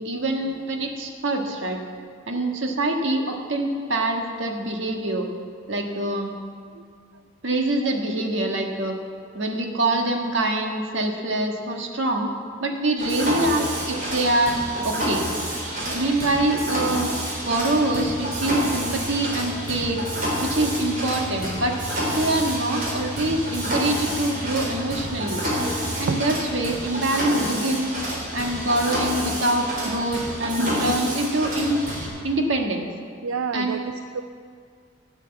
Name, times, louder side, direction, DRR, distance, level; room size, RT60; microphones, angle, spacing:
voice 1, 0.0-1.8 2.3-5.2 5.7-6.3 7.4-9.0 9.3-12.3 12.6-14.6 14.8-15.3 15.9-17.1 17.4-20.0 20.4-21.8 22.1-25.5 26.0-28.0 28.3-31.8 32.2-32.9 33.5-33.9, right 1 dB, 65° right, 2 dB, 1.6 m, -25 dB
Mechanisms, 13.0-32.1, equal, 45° right, 3.9 m, -28 dB
voice 2, 30.6-31.0 33.2-34.2, right 4 dB, 85° right, 8 dB, 0.5 m, -29 dB
13.5 x 8.2 x 7.8 m, 2.1 s
head